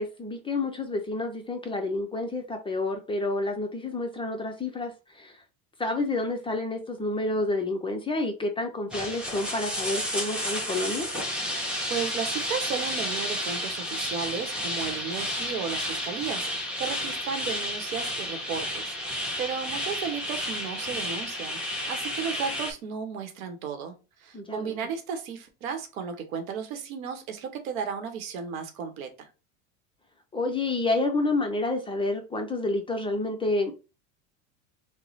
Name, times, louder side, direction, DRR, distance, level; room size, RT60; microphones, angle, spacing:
voice 1, 0.0-5.4 5.8-11.1 24.3-24.9 30.3-33.7, left 2 dB, 15° left, 0.5 m, -29 dB
sound 1, 8.9-22.7, equal, ahead, 0.8 m, -31 dB
voice 2, 11.6-23.9 24.2-29.3, right 6 dB, 85° right, 0.9 m, -34 dB
3.1 x 2.1 x 4.0 m
supercardioid pair, 105°, 41 cm